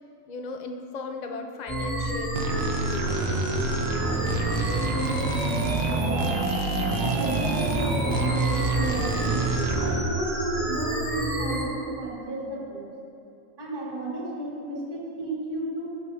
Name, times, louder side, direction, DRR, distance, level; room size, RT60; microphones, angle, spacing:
voice 1, 0.3-3.2 6.0-6.2, left 3 dB, 70° left, 4 dB, 0.4 m, -38 dB
sound 1, 1.7-11.7, right 1 dB, 20° right, 1.3 m, -29 dB
sound 2, 2.3-10.0, right 3 dB, 55° right, 0.8 m, -28 dB
voice 2, 5.5-6.4 6.9-8.4 8.8-12.9 13.6-16.0, right 2 dB, 85° right, -8 dB, 2.7 m, -33 dB
15.5 x 7.2 x 2.7 m, 2.7 s
omnidirectional pair, 1.6 m